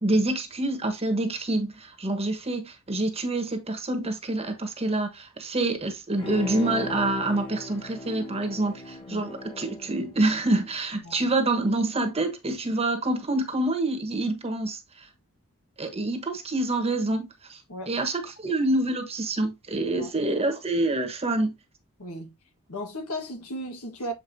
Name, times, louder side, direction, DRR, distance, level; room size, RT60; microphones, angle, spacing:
voice 1, 0.0-15.1 15.8-17.6 17.9-21.5, right 2 dB, 25° right, 1.3 m, -27 dB
Bowed string instrument, 6.2-10.8 11.2-11.3, left 2 dB, 25° left, 1.3 m, -38 dB
voice 2, 11.0-11.4 17.7-18.0 20.0-20.1 22.0-22.3 22.7-24.1, equal, 80° left, 1.7 m, -36 dB
7.8 x 4.5 x 2.7 m
head